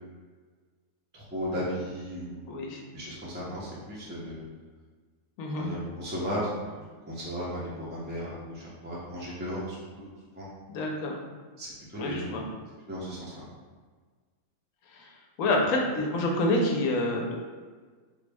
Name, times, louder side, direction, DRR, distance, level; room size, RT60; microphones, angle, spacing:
voice 1, 1.1-2.5 2.9-4.4 5.6-6.8 7.1-10.1 10.3-10.5 11.6-12.4 12.9-13.3, equal, 15° right, -7 dB, 0.4 m, -35 dB
voice 2, 2.5-2.8 5.4-5.7 10.7-11.2 12.0-12.4 14.9-15.1 15.4-17.3, left 1 dB, 70° left, 1 dB, 1.0 m, -27 dB
3.8 x 2.0 x 3.4 m, 1.5 s
omnidirectional pair, 1.5 m